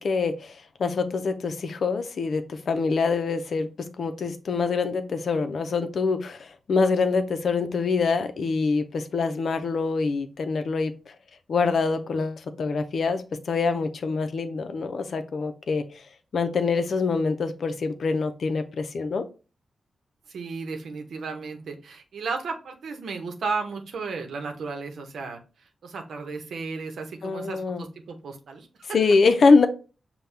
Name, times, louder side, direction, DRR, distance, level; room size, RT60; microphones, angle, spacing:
voice 1, 0.0-10.9 11.5-15.8 16.3-19.2 27.2-27.8 28.9-29.7, left 4 dB, 70° left, 0.5 m, -25 dB
voice 2, 20.3-29.1, right 4 dB, 85° right, 0.8 m, -34 dB
5.6 x 2.2 x 3.3 m
cardioid pair, 60°, 0 cm